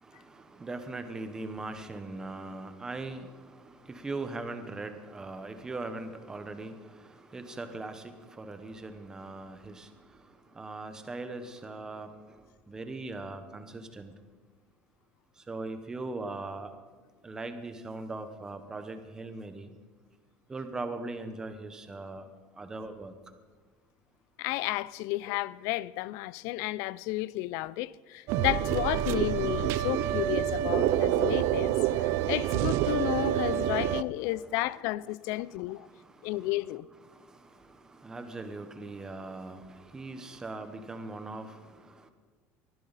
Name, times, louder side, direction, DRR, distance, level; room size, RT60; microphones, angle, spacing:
voice 1, 0.0-14.1 15.4-16.7 17.2-19.7 20.5-22.3 22.5-23.1 35.5-36.5 37.0-42.1, right 2 dB, 10° right, 1.0 m, -40 dB
voice 2, 24.4-35.9 36.2-36.9, left 17 dB, 60° left, 0.4 m, -32 dB
sound 1, 28.3-34.0, right 12 dB, 50° right, 0.5 m, -27 dB
20.5 x 14.0 x 4.1 m
cardioid pair, 175°, 6 cm